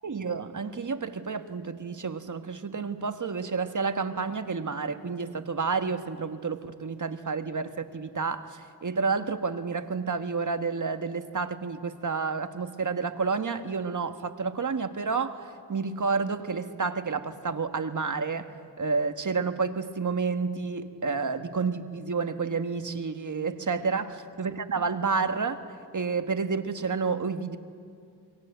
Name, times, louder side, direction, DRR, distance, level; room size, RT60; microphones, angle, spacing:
voice 1, 0.0-18.5 18.8-27.6, right 4 dB, 50° right, 8 dB, 1.4 m, -30 dB
27.0 x 23.0 x 8.0 m, 2.5 s
wide cardioid pair, 80°, 39 cm